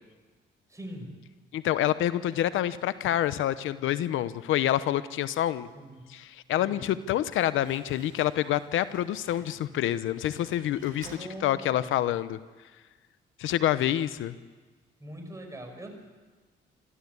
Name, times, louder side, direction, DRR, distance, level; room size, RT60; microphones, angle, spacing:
voice 1, 0.7-1.2 5.7-6.0 6.6-6.9 11.0-11.8 15.0-15.9, right 1 dB, 15° right, 3 dB, 6.1 m, -42 dB
voice 2, 1.5-5.7 6.1-11.1 11.4-12.4 13.4-14.3, left 12 dB, 80° left, 14 dB, 0.8 m, -27 dB
Slam, 7.2-12.1, right 4 dB, 45° right, 4.3 m, -53 dB
25.5 x 14.5 x 8.2 m, 1.4 s
cardioid pair, 90°, 20 cm